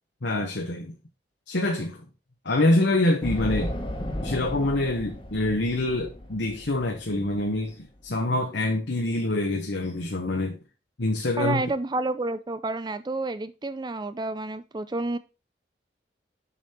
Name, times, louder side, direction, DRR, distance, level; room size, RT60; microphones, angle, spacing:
voice 1, 0.2-1.0 1.5-2.0 2.4-3.7 4.2-10.6 11.0-11.6, left 2 dB, 80° left, 1.1 m, -25 dB
sound 1, 3.2-8.1, left 1 dB, 30° left, 1.3 m, -34 dB
voice 2, 11.4-15.2, right 2 dB, 25° right, 0.4 m, -29 dB
7.1 x 5.1 x 4.3 m
head